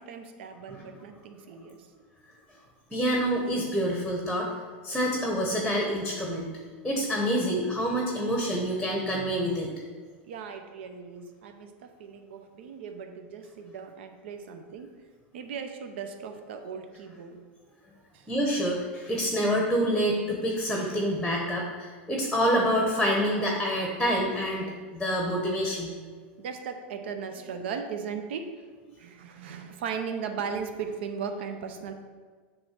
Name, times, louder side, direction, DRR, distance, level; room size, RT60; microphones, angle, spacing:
voice 1, 0.0-1.9 10.2-14.9 15.3-17.4 18.1-18.3 26.4-28.5 28.9-31.9, right 6 dB, 75° right, 6 dB, 0.7 m, -37 dB
voice 2, 2.9-4.5 4.8-6.5 6.8-9.7 18.3-25.9, equal, ahead, -1 dB, 0.9 m, -27 dB
7.7 x 3.3 x 5.8 m, 1.5 s
supercardioid pair, 135°, 6 cm